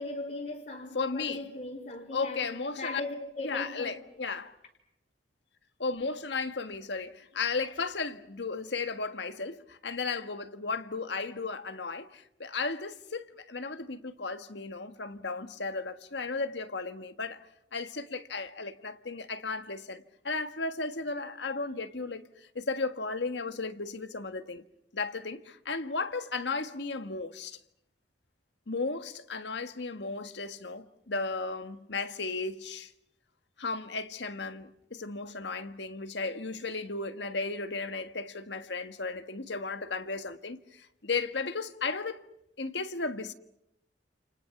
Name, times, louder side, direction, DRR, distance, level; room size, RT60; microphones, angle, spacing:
voice 1, 0.0-3.9, left 2 dB, 55° left, 3.8 m, -38 dB
voice 2, 0.9-1.5 2.1-3.0 3.4-4.5 5.8-17.4 17.7-24.6 24.9-27.6 28.7-32.9 33.6-42.2 42.6-43.3, left 4 dB, 70° left, 1.6 m, -35 dB
29.5 x 29.0 x 6.0 m
head